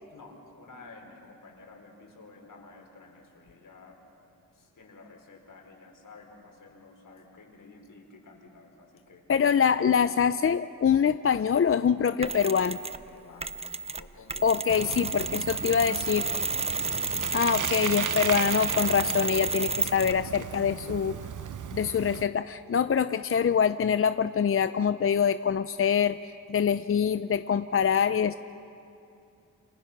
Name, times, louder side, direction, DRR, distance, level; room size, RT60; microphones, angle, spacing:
voice 1, 0.1-4.0 4.5-9.2 13.1-13.5 13.9-15.1 15.5-16.4 16.8-17.0 17.4-17.7 18.1-18.4 19.6-19.9, left 3 dB, 70° left, 1 dB, 4.8 m, -51 dB
voice 2, 9.3-12.8 14.4-16.2 17.3-21.2 21.7-28.4, left 7 dB, 40° left, 11 dB, 0.6 m, -25 dB
Mechanisms, 12.2-13.0 13.4-20.3, right 3 dB, 20° right, 0.7 m, -31 dB
Bicycle, 14.7-22.2, right 8 dB, 60° right, 0.8 m, -36 dB
29.0 x 26.0 x 6.0 m, 2.7 s
cardioid pair, 70°, 34 cm